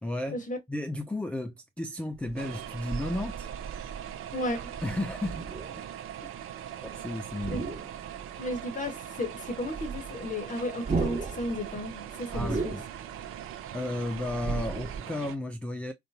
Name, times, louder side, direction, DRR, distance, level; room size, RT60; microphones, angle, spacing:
voice 1, 0.0-0.4 0.7-3.5 4.8-5.4 6.8-7.7 12.3-12.8 13.7-15.9, left 1 dB, 5° left, 0.3 m, -33 dB
sound 1, 2.2-7.0 7.3-8.6 8.9-9.0 9.2-15.0, right 4 dB, 20° right, 1.2 m, -36 dB
sound 2, 2.4-15.4, right 10 dB, 45° right, 0.6 m, -41 dB
voice 2, 4.3-4.7 7.5-7.6 8.4-12.7, left 1 dB, 25° left, 0.9 m, -34 dB
3.7 x 2.1 x 2.6 m
figure-of-eight pair, 55°, 29 cm